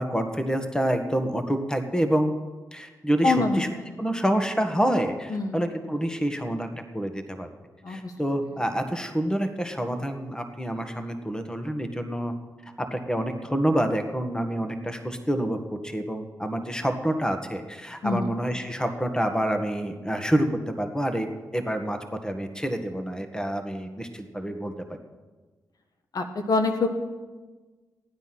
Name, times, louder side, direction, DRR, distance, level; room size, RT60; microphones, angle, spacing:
voice 1, 0.0-2.3 2.7-3.7 4.0-7.5 7.9-12.3 12.9-15.6 15.8-21.3 21.5-24.7, right 1 dB, 10° left, 6 dB, 1.8 m, -27 dB
voice 2, 3.2-3.9 5.3-5.6 7.8-8.1 18.0-18.3 26.1-26.9, left 3 dB, 60° left, 6 dB, 1.3 m, -25 dB
14.5 x 9.5 x 6.1 m, 1.3 s
cardioid pair, 50°, 7 cm